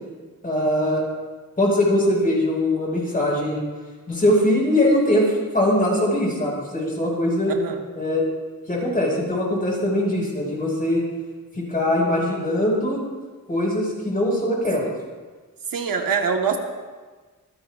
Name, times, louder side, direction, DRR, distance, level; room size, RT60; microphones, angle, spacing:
voice 1, 0.4-1.0 1.6-3.6 4.1-7.6 8.0-8.2 8.7-11.0 11.5-13.0 13.5-14.9, left 1 dB, 25° left, -3 dB, 5.5 m, -21 dB
voice 2, 15.7-16.6, right 6 dB, 80° right, 3 dB, 1.4 m, -24 dB
25.5 x 15.5 x 2.5 m, 1.4 s
wide cardioid pair, 140°, 34 cm